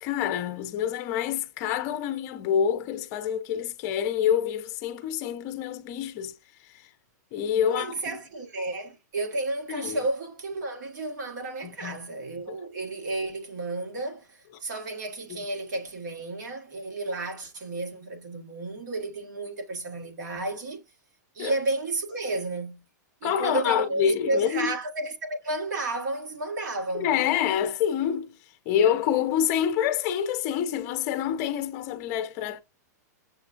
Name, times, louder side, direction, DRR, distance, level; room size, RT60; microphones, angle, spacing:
voice 1, 0.0-6.3 6.6-6.9 7.3-8.2 9.7-10.0 11.6-12.0 12.5-12.6 15.3-15.5 21.4-21.5 23.2-24.7 26.9-28.4 28.7-32.6, left 9 dB, 25° left, 0.5 m, -27 dB
voice 2, 7.6-20.8 21.3-22.8 23.2-27.2, right 2 dB, 85° right, 1.8 m, -32 dB
6.8 x 2.3 x 2.5 m
supercardioid pair, 175°, 10 cm